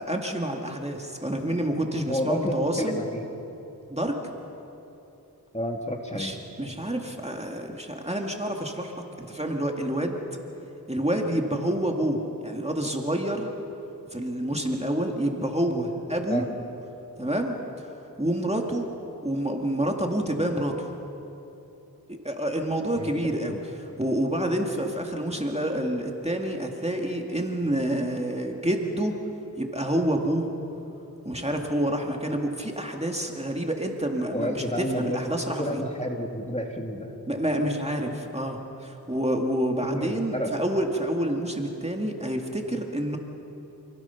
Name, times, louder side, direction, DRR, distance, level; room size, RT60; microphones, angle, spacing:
voice 1, 0.0-3.0 3.9-4.2 6.1-10.2 10.9-13.5 14.1-16.5 17.2-17.9 18.2-18.9 19.2-20.9 22.1-29.1 29.6-30.5 31.2-35.8 37.3-43.2, right 1 dB, 15° right, 1 dB, 2.2 m, -28 dB
voice 2, 2.1-3.2 5.5-6.3 16.3-16.4 23.0-23.1 23.5-23.6 34.3-35.2 35.5-37.1 39.8-40.5, equal, 15° left, 2 dB, 2.5 m, -30 dB
28.5 x 19.0 x 5.9 m, 3.0 s
wide cardioid pair, 45°, 39 cm